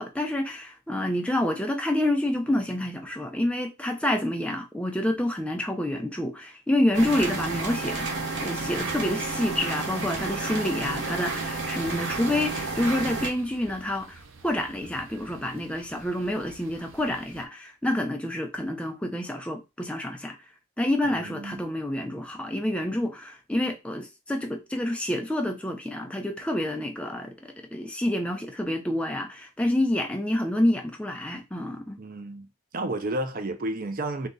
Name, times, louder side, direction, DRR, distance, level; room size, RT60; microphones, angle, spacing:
voice 1, 0.0-8.1 8.4-20.4 20.8-32.0, left 1 dB, 5° left, 0.6 m, -28 dB
sound 1, 6.9-13.3, right 3 dB, 60° right, 1.0 m, -31 dB
sound 2, 11.8-17.5, right 3 dB, 75° right, 0.7 m, -49 dB
voice 2, 21.0-21.6 32.0-32.5 32.7-34.3, right 1 dB, 45° right, 0.5 m, -31 dB
3.7 x 2.9 x 3.9 m
head